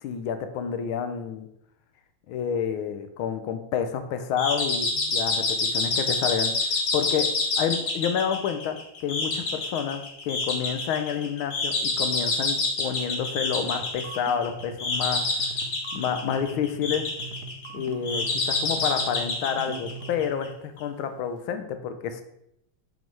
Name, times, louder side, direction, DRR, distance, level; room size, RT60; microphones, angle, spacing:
voice 1, 0.0-1.5 2.3-5.4 5.7-7.3 7.6-15.2 15.9-17.1 17.7-22.2, left 8 dB, 90° left, 8 dB, 1.5 m, -29 dB
sound 1, 4.4-20.5, left 3 dB, 45° left, 1.4 m, -28 dB
sound 2, 13.3-20.3, right 5 dB, 65° right, 0.9 m, -42 dB
7.3 x 4.0 x 4.5 m, 0.77 s
omnidirectional pair, 2.3 m